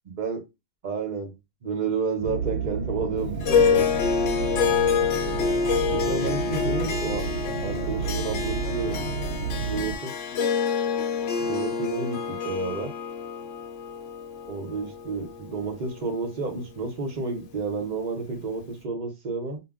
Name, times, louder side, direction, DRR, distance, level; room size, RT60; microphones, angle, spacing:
voice 1, 0.8-1.3 1.6-3.8 5.9-7.3 7.6-9.0 9.5-10.1 11.4-12.9 14.5-19.6, right 4 dB, 45° right, 0.7 m, -31 dB
sound 1, 2.2-10.0, right 5 dB, 80° right, 0.9 m, -31 dB
Harp, 3.4-16.0, left 6 dB, 70° left, 0.8 m, -27 dB
2.2 x 2.1 x 3.5 m
omnidirectional pair, 1.3 m